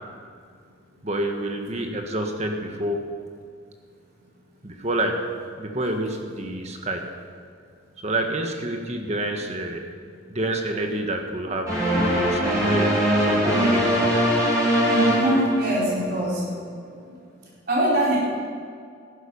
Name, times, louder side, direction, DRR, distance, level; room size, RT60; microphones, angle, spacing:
voice 1, 1.0-3.0 4.6-5.3 5.6-7.1 8.0-9.8 10.3-14.1, right 1 dB, 35° right, 3 dB, 1.5 m, -28 dB
sound 1, 11.7-16.1, equal, 20° right, 4.5 m, -22 dB
voice 2, 14.8-16.4 17.7-18.2, right 1 dB, 50° right, -5 dB, 4.5 m, -22 dB
14.5 x 11.5 x 5.6 m, 2.2 s
head